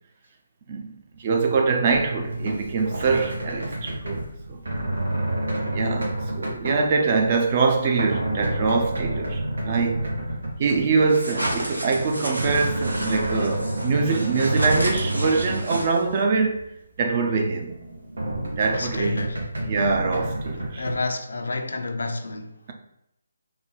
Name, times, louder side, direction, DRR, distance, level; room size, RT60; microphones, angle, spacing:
voice 1, 0.7-4.2 4.5-4.6 5.7-10.1 10.6-16.7 17.0-17.7 18.5-19.3 19.7-20.8, right 4 dB, 35° right, 0.5 m, -24 dB
sound 1, 1.9-11.0 11.7-16.0 16.3-16.4 16.6-16.7 17.5-20.9, right 1 dB, 70° right, 1.0 m, -29 dB
sound 2, 11.1-16.2, right 1 dB, 85° right, 0.8 m, -31 dB
voice 2, 18.6-19.4 20.5-22.6, left 3 dB, 65° left, 0.4 m, -30 dB
3.8 x 2.2 x 3.0 m
figure-of-eight pair, 145°, 0 cm